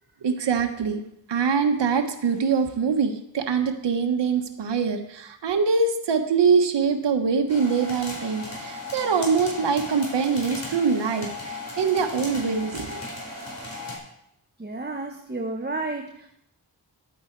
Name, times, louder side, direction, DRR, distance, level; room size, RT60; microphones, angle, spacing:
voice 1, 0.2-1.0 1.3-13.0, right 5 dB, 75° right, 5 dB, 1.2 m, -23 dB
sound 1, 7.5-14.0, left 2 dB, 40° left, 5.1 m, -36 dB
voice 2, 14.6-16.3, right 2 dB, 25° right, 3 dB, 1.2 m, -31 dB
12.0 x 8.7 x 4.6 m, 0.78 s
cardioid pair, 45°, 42 cm